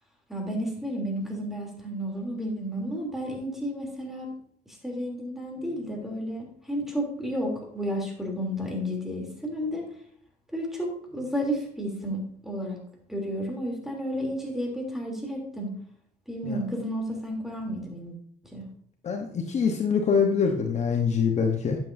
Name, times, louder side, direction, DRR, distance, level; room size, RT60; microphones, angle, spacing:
voice 1, 0.3-4.3 4.8-9.9 10.5-12.8 13.1-15.7 16.3-18.1 18.5-18.6, equal, ahead, -1 dB, 3.0 m, -32 dB
voice 2, 19.0-21.8, left 6 dB, 45° left, 3 dB, 1.1 m, -24 dB
11.5 x 8.0 x 2.7 m, 0.64 s
cardioid pair, 110°, 17 cm